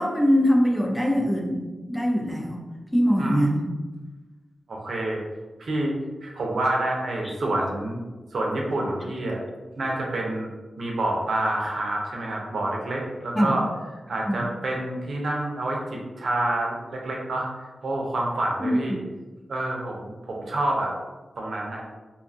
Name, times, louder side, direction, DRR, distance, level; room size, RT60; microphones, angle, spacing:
voice 1, 0.0-2.6 2.9-3.6 7.2-7.3 13.3-13.5 14.3-14.4 18.6-19.0, equal, 10° left, -1 dB, 0.4 m, -22 dB
voice 2, 4.7-5.2 5.6-5.9 6.2-8.0 8.3-9.4 9.8-10.5 10.8-13.6 14.1-15.8 16.2-17.5 17.8-19.0 19.5-20.9 21.4-21.8, right 1 dB, 75° right, -1 dB, 0.5 m, -27 dB
2.6 x 2.4 x 2.5 m, 1.2 s
wide cardioid pair, 80°, 0 cm